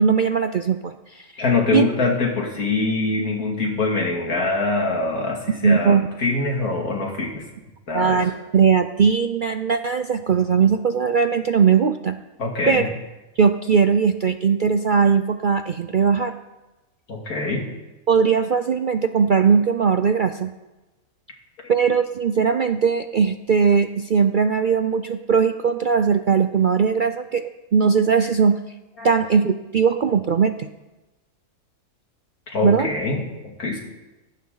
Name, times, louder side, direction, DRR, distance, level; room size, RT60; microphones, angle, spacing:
voice 1, 0.0-1.3 1.7-1.9 5.6-6.1 7.9-12.2 12.7-12.8 13.4-16.4 18.1-20.5 21.7-28.6 29.0-30.7 32.6-32.9, right 6 dB, 55° right, 9 dB, 0.5 m, -19 dB
voice 2, 1.4-7.5 7.9-8.2 12.4-12.9 17.1-17.7 29.0-29.1 32.5-33.8, left 3 dB, 80° left, 1 dB, 2.9 m, -24 dB
18.5 x 15.5 x 3.9 m, 1.1 s
omnidirectional pair, 1.5 m